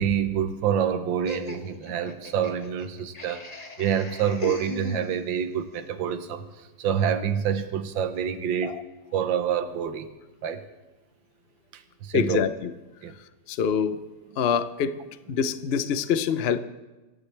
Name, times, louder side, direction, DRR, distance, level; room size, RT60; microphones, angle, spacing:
voice 1, 0.0-6.5 6.8-8.7 9.1-10.1 10.4-10.6 11.7-12.4 13.0-13.1, right 8 dB, 85° right, 9 dB, 1.7 m, -27 dB
Laughter, 1.3-5.5, left 2 dB, 25° left, 1.2 m, -38 dB
voice 2, 12.1-12.7 13.5-14.0 14.4-15.0 15.3-16.6, left 7 dB, 60° left, 12 dB, 0.6 m, -25 dB
26.5 x 14.0 x 3.3 m, 1.1 s
omnidirectional pair, 2.0 m